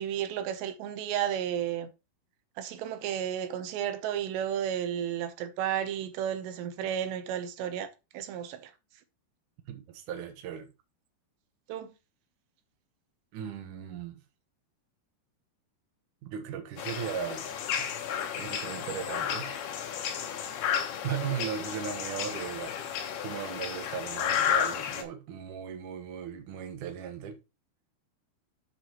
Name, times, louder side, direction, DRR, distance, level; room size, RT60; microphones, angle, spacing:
voice 1, 0.0-1.9 2.6-8.7 11.7-11.9, right 10 dB, 90° right, 3.2 m, -33 dB
voice 2, 9.7-10.7 13.3-14.2 16.2-17.5 17.8-17.9 18.4-19.5 21.0-27.4, right 8 dB, 60° right, 2.4 m, -37 dB
sound 1, 16.8-25.0, left 8 dB, 70° left, 3.0 m, -32 dB
9.8 x 7.6 x 3.0 m
omnidirectional pair, 4.8 m